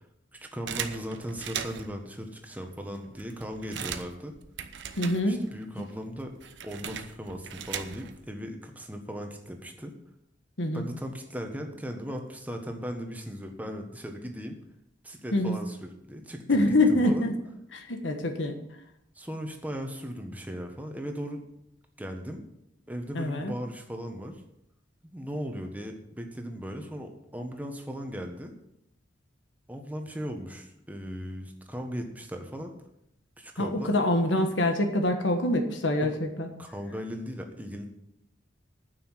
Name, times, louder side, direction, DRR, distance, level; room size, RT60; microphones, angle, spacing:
voice 1, 0.3-4.3 5.2-6.3 6.6-9.9 10.7-14.6 15.0-17.3 19.1-21.4 22.0-22.4 22.9-24.4 25.0-28.5 29.7-32.7 33.4-34.0 36.6-37.9, equal, 10° right, 3 dB, 1.4 m, -37 dB
sound 1, 0.7-2.0 2.6-2.7 3.0-5.6 5.9-8.3, right 7 dB, 75° right, 0.9 m, -38 dB
voice 2, 5.0-5.4 5.8-5.9 10.6-10.8 15.3-15.6 16.5-17.3 17.7-18.6 23.1-23.5 33.6-36.5, left 1 dB, 80° left, 5 dB, 1.4 m, -25 dB
9.6 x 6.9 x 9.1 m, 0.81 s
head